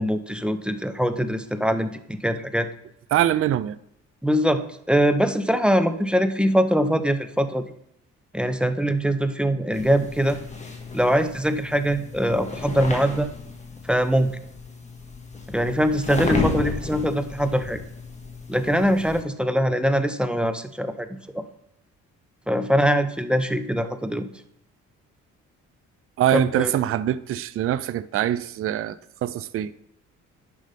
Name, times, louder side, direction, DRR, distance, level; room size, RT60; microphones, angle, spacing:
voice 1, 0.0-2.7 4.2-7.6 8.3-10.4 10.9-13.3 13.8-14.3 15.5-17.8 18.5-21.1 21.3-21.4 22.5-24.3 26.3-26.7, equal, 5° right, 0.6 m, -22 dB
voice 2, 3.1-3.8 26.2-29.0 29.2-29.7, right 12 dB, 50° right, 0.4 m, -23 dB
sound 1, 9.7-19.2, left 3 dB, 25° left, 1.6 m, -33 dB
10.5 x 5.3 x 3.4 m
cardioid pair, 90°, 30 cm